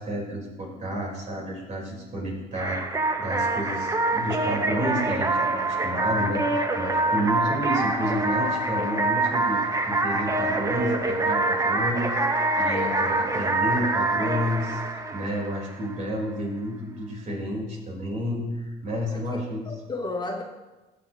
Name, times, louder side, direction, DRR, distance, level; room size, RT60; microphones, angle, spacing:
voice 1, 0.0-19.7, equal, 45° right, -2 dB, 3.7 m, -31 dB
sound 1, 2.6-16.0, right 2 dB, 20° right, 0.9 m, -25 dB
voice 2, 19.1-20.4, left 2 dB, 25° left, 3 dB, 1.0 m, -33 dB
15.5 x 7.9 x 2.8 m, 1.1 s
cardioid pair, 110°, 17 cm